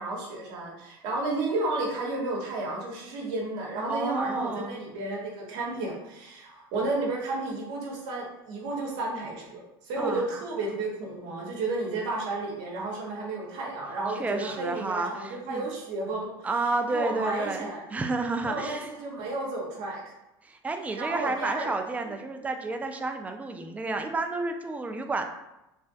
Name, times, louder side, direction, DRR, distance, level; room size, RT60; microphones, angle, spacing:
voice 1, 0.0-16.3 16.9-17.8 18.4-20.1 20.9-21.7, right 2 dB, 70° right, -2 dB, 0.8 m, -32 dB
voice 2, 3.9-4.8 10.0-10.3 14.2-15.1 15.5-15.7 16.4-18.9 20.4-25.3, right 3 dB, 10° right, 5 dB, 0.3 m, -30 dB
3.2 x 2.5 x 2.3 m, 0.92 s
hypercardioid pair, 75°, 13 cm